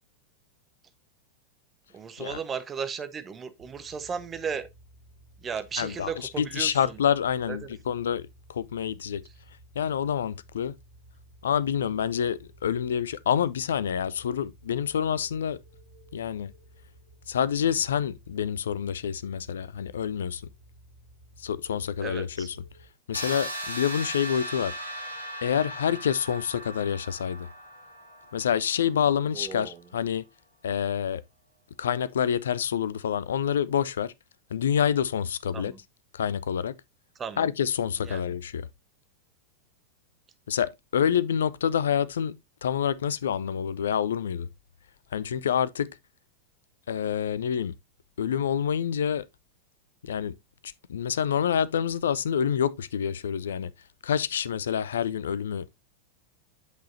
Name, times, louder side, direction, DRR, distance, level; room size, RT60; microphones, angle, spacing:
voice 1, 1.9-4.7 5.4-6.8 7.5-7.6 22.0-22.5 29.3-29.8 35.5-35.8 37.2-37.5 38.0-38.2, right 6 dB, 20° right, 1.0 m, -35 dB
sound 1, 3.6-22.9, right 1 dB, 75° right, 2.1 m, -55 dB
voice 2, 5.8-9.2 9.8-10.7 11.4-15.6 16.1-16.5 17.3-20.4 21.4-22.6 23.1-24.8 25.4-27.5 28.3-30.2 30.6-31.2 31.8-34.1 34.5-35.7 36.1-36.8 37.4-38.7 40.5-42.4 42.6-44.5 45.1-46.0 46.9-47.7 48.2-49.2 50.0-50.3 50.6-53.7 54.0-55.8, left 8 dB, 65° left, 0.4 m, -27 dB
sound 2, 23.1-28.9, right 1 dB, 90° right, 2.1 m, -38 dB
8.3 x 6.2 x 2.6 m
figure-of-eight pair, 90°, 0 cm